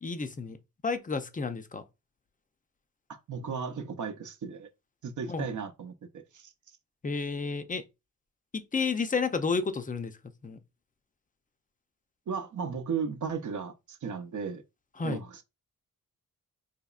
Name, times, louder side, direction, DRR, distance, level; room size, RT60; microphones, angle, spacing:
voice 1, 0.0-0.6 0.8-1.8 5.3-5.5 7.0-7.8 8.5-10.1 10.4-10.6 15.0-15.2, left 4 dB, 25° left, 0.5 m, -31 dB
voice 2, 3.1-4.7 5.0-6.5 12.3-14.6 15.0-15.4, right 6 dB, 60° right, 0.7 m, -35 dB
4.2 x 2.9 x 2.4 m
wide cardioid pair, 100°, 33 cm